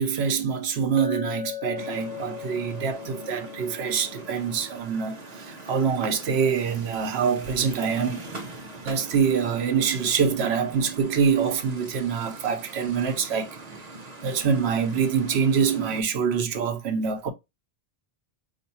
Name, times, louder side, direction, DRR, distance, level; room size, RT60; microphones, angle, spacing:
voice 1, 0.0-8.2 8.8-13.5 14.2-17.3, right 6 dB, 90° right, 1.0 m, -25 dB
Chink clink, 1.0-5.1, left 11 dB, 20° right, 2.1 m, -38 dB
sound 1, 1.7-16.0, right 2 dB, 45° right, 0.8 m, -42 dB
4.5 x 2.7 x 2.7 m
omnidirectional pair, 1.1 m